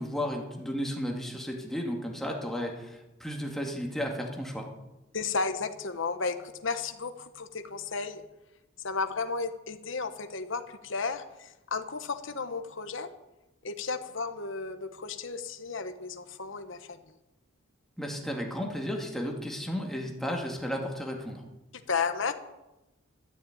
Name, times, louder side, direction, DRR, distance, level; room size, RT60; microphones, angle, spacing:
voice 1, 0.0-4.7 18.0-21.4, equal, ahead, 0 dB, 2.4 m, -33 dB
voice 2, 5.1-8.2 8.8-13.1 13.6-17.0 21.7-22.3, left 4 dB, 65° left, 8 dB, 1.2 m, -33 dB
13.0 x 10.5 x 9.1 m, 0.98 s
head